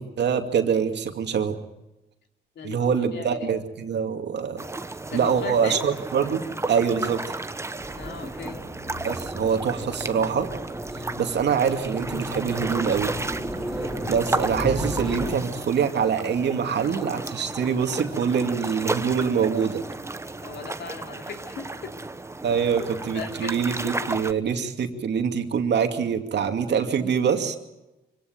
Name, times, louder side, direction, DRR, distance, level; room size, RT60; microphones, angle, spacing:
voice 1, 0.0-1.6 2.6-4.6 5.1-7.2 9.0-10.5 11.2-13.2 14.1-19.8 22.4-27.6, right 7 dB, 60° right, 5 dB, 2.5 m, -24 dB
voice 2, 2.6-3.5 5.1-5.8 7.9-8.6 20.4-21.9 22.7-23.6, left 6 dB, 65° left, 5 dB, 2.9 m, -37 dB
sound 1, 4.6-24.3, right 2 dB, 15° right, 1.0 m, -34 dB
sound 2, 7.8-15.4, equal, ahead, 4.6 m, -34 dB
25.0 x 17.5 x 8.9 m, 1.0 s
cardioid pair, 90°, 20 cm